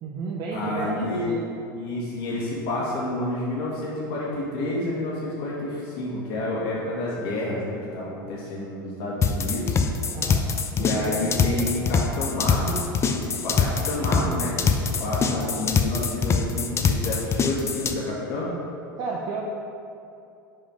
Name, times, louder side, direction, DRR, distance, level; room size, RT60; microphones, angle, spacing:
voice 1, 0.0-1.4 10.1-10.4 10.8-11.7 15.1-15.7 19.0-19.5, right 4 dB, 40° right, -3 dB, 0.8 m, -33 dB
voice 2, 0.5-1.2 1.7-9.8 10.7-12.8 13.1-18.5, left 2 dB, 55° left, -6 dB, 1.7 m, -29 dB
sound 1, 9.2-17.9, left 5 dB, 25° left, 0.5 m, -23 dB
5.7 x 5.0 x 5.1 m, 2.6 s
hypercardioid pair, 90°, 11 cm